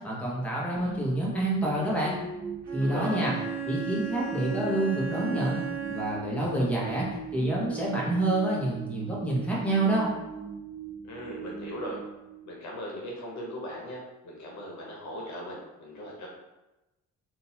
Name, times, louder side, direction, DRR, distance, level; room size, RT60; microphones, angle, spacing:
voice 1, 0.0-2.2 2.7-3.4 3.6-7.1 7.3-10.1, right 1 dB, 5° left, -6 dB, 1.2 m, -28 dB
sound 1, 0.8-12.9, right 4 dB, 20° right, 0.6 m, -40 dB
Bowed string instrument, 2.6-6.5, right 9 dB, 85° right, 0.9 m, -35 dB
voice 2, 2.8-3.2 11.0-12.0 12.5-16.3, equal, 65° left, -2 dB, 0.9 m, -38 dB
3.8 x 2.5 x 2.9 m, 1.0 s
cardioid pair, 90°, 30 cm